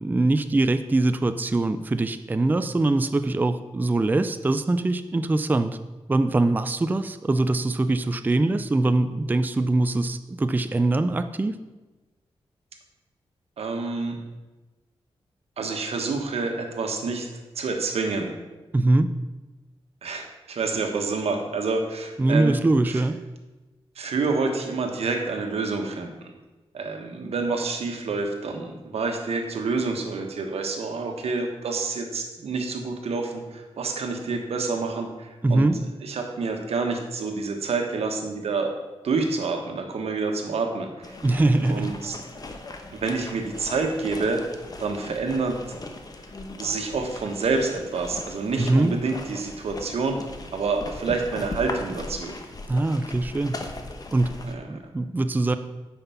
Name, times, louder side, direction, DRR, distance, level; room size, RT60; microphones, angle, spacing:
voice 1, 0.0-5.8 6.1-11.6 18.7-19.1 22.2-23.2 35.4-35.8 41.2-41.9 48.6-48.9 52.7-53.6 54.1-54.4 54.7-55.6, right 2 dB, 20° right, 10 dB, 0.4 m, -22 dB
voice 2, 13.6-14.2 15.6-17.3 17.5-18.3 20.0-22.5 22.9-23.0 23.9-26.1 26.7-35.7 36.0-38.7 39.0-41.2 41.7-42.2 42.9-44.5 44.8-45.6 46.2-46.3 46.6-50.2 50.5-52.3 54.4-54.8, right 4 dB, 90° right, 3 dB, 1.3 m, -28 dB
sound 1, 41.0-54.5, left 2 dB, 40° left, 1.0 m, -39 dB
9.1 x 5.8 x 5.6 m, 1.2 s
wide cardioid pair, 110°, 10 cm